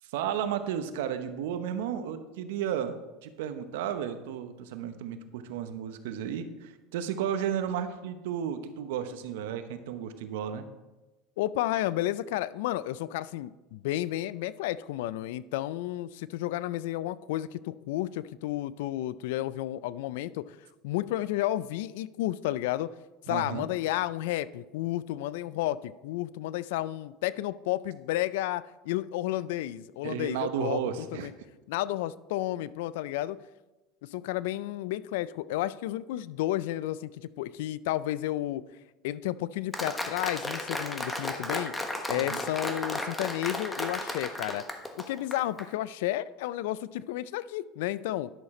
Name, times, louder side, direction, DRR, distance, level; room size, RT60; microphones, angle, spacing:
voice 1, 0.0-10.6 23.3-23.7 30.0-31.3 42.2-42.4, right 9 dB, 80° right, 10 dB, 0.8 m, -33 dB
voice 2, 11.4-20.6 20.8-22.9 23.3-30.8 31.1-31.3 31.7-33.4 34.0-38.6 39.0-41.7 42.1-44.6 45.0-48.3, left 14 dB, 80° left, 18 dB, 0.3 m, -32 dB
Applause, 39.7-45.7, left 1 dB, 10° left, 1.1 m, -34 dB
11.0 x 6.5 x 4.3 m, 1.1 s
supercardioid pair, 105°, 0 cm